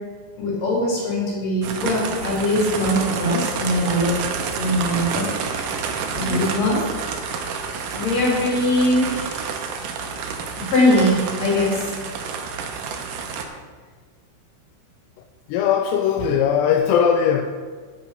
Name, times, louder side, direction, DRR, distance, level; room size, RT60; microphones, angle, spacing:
voice 1, 0.4-4.2 4.6-5.7 6.1-6.8 7.9-9.5 10.6-11.9, left 1 dB, 40° left, 4.3 m, -21 dB
sound 1, 1.6-13.4, right 5 dB, 90° right, 1.9 m, -29 dB
voice 2, 15.5-17.4, left 8 dB, 85° left, 2.6 m, -19 dB
9.8 x 9.3 x 5.1 m
omnidirectional pair, 5.2 m